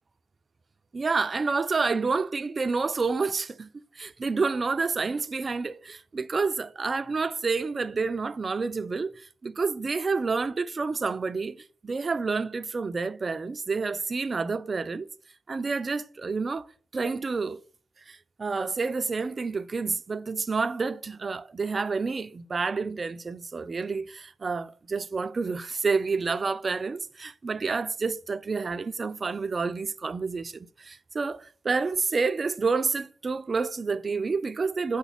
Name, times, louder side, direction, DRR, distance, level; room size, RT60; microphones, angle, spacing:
voice 1, 0.9-3.7 4.0-15.1 15.5-16.7 16.9-17.6 18.1-35.0, right 4 dB, 40° right, 0.4 m, -29 dB
5.0 x 4.0 x 5.6 m
supercardioid pair, 50°, 0 cm